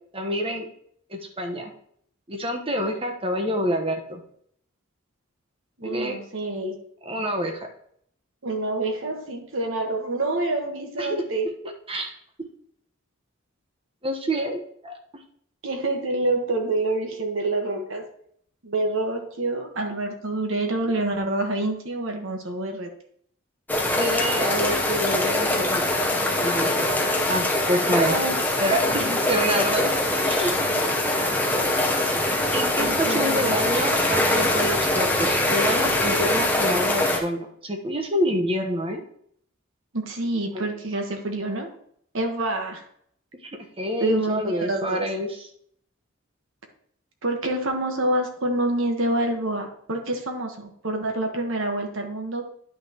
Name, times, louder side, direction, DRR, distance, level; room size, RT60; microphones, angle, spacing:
voice 1, 0.1-0.6 1.1-1.7 2.3-4.2 5.8-6.2 7.0-7.7 11.0-11.2 11.9-12.1 14.0-14.9 23.9-25.8 26.4-26.9 27.3-28.2 28.5-29.9 30.2-30.6 32.5-39.0 40.5-40.7 43.4-43.5 43.8-45.5, equal, 25° right, 3 dB, 1.1 m, -27 dB
voice 2, 5.8-6.8 8.4-11.5 15.6-18.1 18.6-22.9 28.1-28.4 28.8-29.2 32.8-33.6 39.9-41.7 42.1-42.9 44.0-45.0 47.2-52.5, right 2 dB, 65° right, 4 dB, 1.3 m, -27 dB
sound 1, 23.7-37.2, left 1 dB, 10° left, 0.9 m, -23 dB
10.5 x 6.0 x 3.0 m, 0.66 s
head